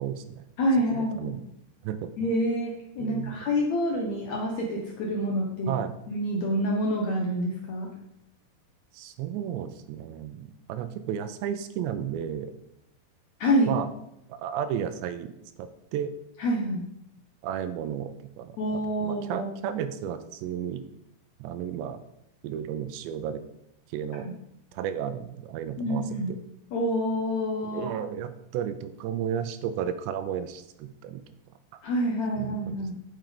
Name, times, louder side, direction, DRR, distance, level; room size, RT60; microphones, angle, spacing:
voice 1, 0.0-0.4 0.9-1.4 1.8-2.1 3.0-3.4 5.7-5.9 8.9-12.5 13.7-13.9 14.3-15.3 15.6-16.1 17.4-18.6 19.0-20.8 21.4-22.0 22.4-23.4 23.9-24.3 24.7-26.4 27.6-31.2 31.7-31.8 32.4-32.9, right 9 dB, 85° right, 10 dB, 2.9 m, -33 dB
voice 2, 0.6-1.4 2.2-5.7 6.1-7.9 13.4-13.8 16.4-16.8 18.6-19.5 24.1-24.3 25.8-26.3 26.7-27.9 31.8-32.9, equal, 70° left, -1 dB, 1.7 m, -27 dB
9.2 x 6.3 x 5.1 m, 0.81 s
omnidirectional pair, 5.0 m